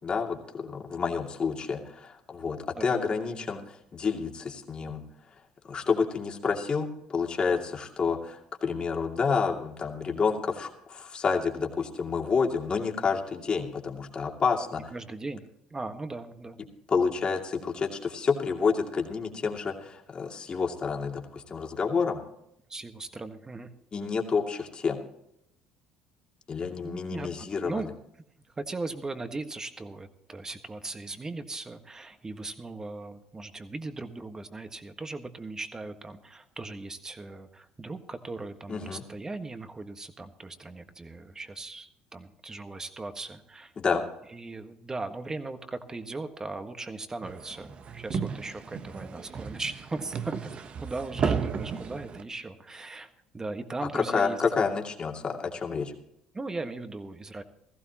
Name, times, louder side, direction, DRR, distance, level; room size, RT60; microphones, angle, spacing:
voice 1, 0.0-5.0 5.7-14.9 16.9-22.2 23.9-25.0 26.5-27.8 38.7-39.0 43.8-44.0 53.9-55.9, left 5 dB, 35° left, 2 dB, 2.5 m, -29 dB
voice 2, 2.7-3.5 14.9-15.4 15.7-16.6 22.7-23.7 26.8-27.3 27.6-27.9 28.6-43.7 44.3-54.4 56.3-57.4, right 3 dB, 20° right, 8 dB, 1.5 m, -38 dB
sound 1, 47.2-52.2, right 6 dB, 45° right, 1.0 m, -34 dB
17.0 x 15.0 x 3.0 m, 0.78 s
supercardioid pair, 70°, 3 cm